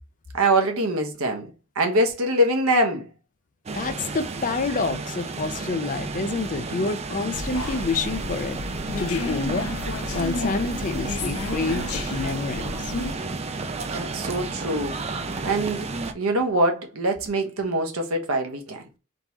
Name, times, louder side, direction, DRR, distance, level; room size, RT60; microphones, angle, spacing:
voice 1, 0.3-1.5 1.8-3.1 13.9-14.9 15.4-15.9 16.1-18.8, right 1 dB, 85° right, 1.1 m, -23 dB
voice 2, 3.7-8.6 9.0-9.7 10.1-12.9, left 4 dB, 40° left, 0.5 m, -28 dB
sound 1, 3.7-16.1, right 3 dB, 30° right, 0.5 m, -32 dB
sound 2, 7.3-13.2, left 2 dB, 90° left, 0.6 m, -32 dB
3.8 x 3.0 x 3.6 m
head